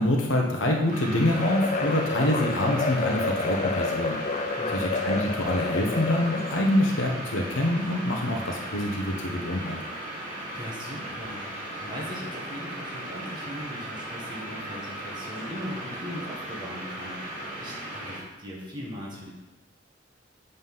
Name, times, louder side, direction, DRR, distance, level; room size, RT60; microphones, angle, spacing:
voice 1, 0.0-4.2 4.7-9.8, left 1 dB, 80° left, 0 dB, 1.0 m, -25 dB
sound 1, 0.9-18.2, right 1 dB, 40° right, 2.8 m, -37 dB
sound 2, 1.3-6.8, left 3 dB, 35° left, 0.4 m, -29 dB
voice 2, 4.6-4.9 10.5-19.3, equal, 25° right, -5 dB, 1.6 m, -39 dB
7.6 x 4.1 x 5.5 m, 1.0 s
head